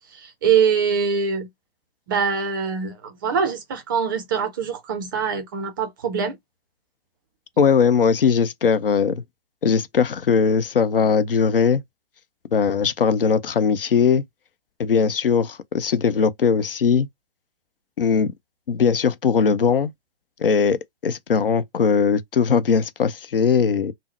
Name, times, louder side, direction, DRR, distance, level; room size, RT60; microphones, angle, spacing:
voice 1, 0.1-1.5 2.1-6.4, right 6 dB, 20° right, 0.4 m, -23 dB
voice 2, 7.6-9.2 9.6-11.8 12.5-14.2 14.8-17.1 18.0-18.3 18.7-19.9 20.4-23.9, left 6 dB, 65° left, 0.6 m, -20 dB
3.6 x 2.0 x 2.9 m
figure-of-eight pair, 125°, 30 cm